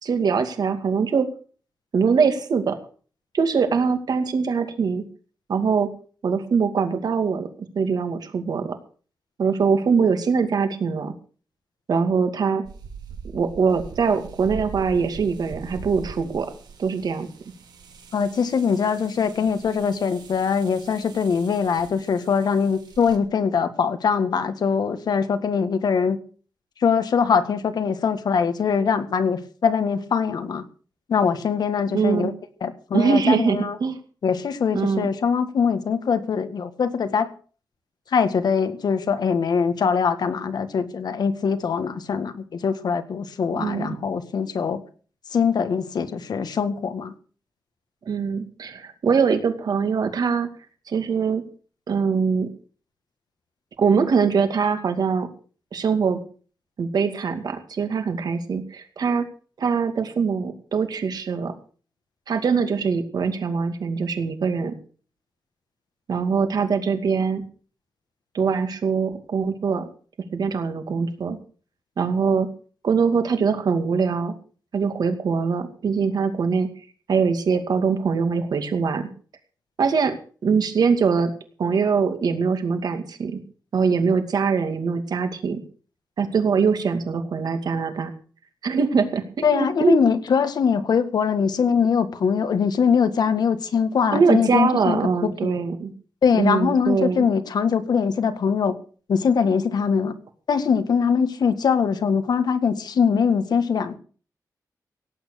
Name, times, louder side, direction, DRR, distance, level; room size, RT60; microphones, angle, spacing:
voice 1, 0.0-1.3 1.9-2.8 3.3-5.0 5.5-5.9 6.2-8.8 9.4-11.1 11.9-12.6 13.3-16.5 16.8-17.3 31.9-32.3 32.9-34.0 34.7-35.1 43.5-44.0 48.1-50.5 50.9-51.4 51.9-52.5 53.8-55.3 55.7-56.2 56.8-59.3 59.6-61.5 62.3-64.7 66.1-67.4 68.3-69.9 70.3-71.4 72.0-72.5 72.8-74.3 74.7-76.7 77.1-79.1 79.8-80.1 80.4-81.3 81.6-83.4 83.7-85.6 86.2-88.1 88.6-90.0 94.1-95.9 96.3-97.2, right 5 dB, 70° right, 7 dB, 2.4 m, -22 dB
sound 1, 12.6-23.2, right 5 dB, 90° right, 3.0 m, -42 dB
voice 2, 18.1-26.2 26.8-30.6 31.1-32.3 32.6-33.8 34.2-37.3 38.1-44.8 45.3-47.1 89.4-95.5 96.2-98.7 99.1-100.1 100.5-104.0, left 6 dB, 75° left, 10 dB, 1.7 m, -22 dB
17.5 x 8.9 x 6.7 m, 0.42 s
wide cardioid pair, 105°, 7 cm